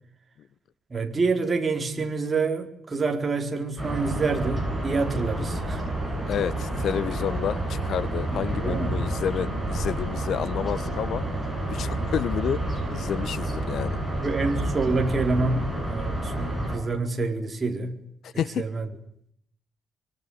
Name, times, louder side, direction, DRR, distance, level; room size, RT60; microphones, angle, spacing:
voice 1, 0.9-5.8 8.3-8.9 14.2-18.0 18.3-18.9, right 3 dB, 20° right, 4.4 m, -27 dB
sound 1, 3.8-16.8, right 1 dB, ahead, 7.6 m, -29 dB
voice 2, 6.3-11.2 11.7-12.6 12.9-14.0 18.2-18.6, left 9 dB, 60° left, 1.3 m, -30 dB
24.5 x 24.0 x 9.6 m
cardioid pair, 160°, 0 cm